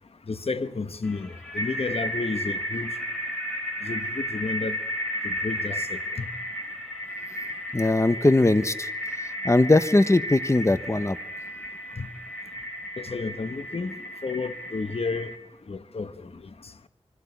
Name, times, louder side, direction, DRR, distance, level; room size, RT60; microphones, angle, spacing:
voice 1, 0.3-1.3 1.5-2.9 3.8-4.8 5.2-6.3 12.0-12.1 13.0-14.0 14.2-15.3 15.7-16.1, left 4 dB, 65° left, 1.1 m, -31 dB
sound 1, 1.1-15.4, equal, 10° left, 4.6 m, -34 dB
voice 2, 7.7-8.9 9.4-11.2, left 2 dB, 25° left, 1.0 m, -20 dB
25.0 x 12.5 x 9.7 m
wide cardioid pair, 60°, 11 cm